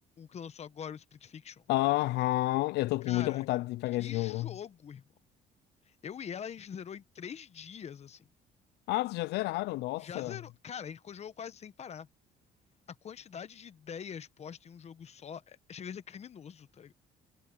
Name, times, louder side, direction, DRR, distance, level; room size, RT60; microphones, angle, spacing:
voice 1, 0.2-1.6 3.0-3.5 4.0-5.0 5.9-8.3 10.0-12.1 12.9-16.9, left 7 dB, 40° left, 1.1 m, -44 dB
voice 2, 1.7-4.5 8.9-10.4, left 18 dB, 80° left, 0.4 m, -30 dB
cardioid pair, 110°, 17 cm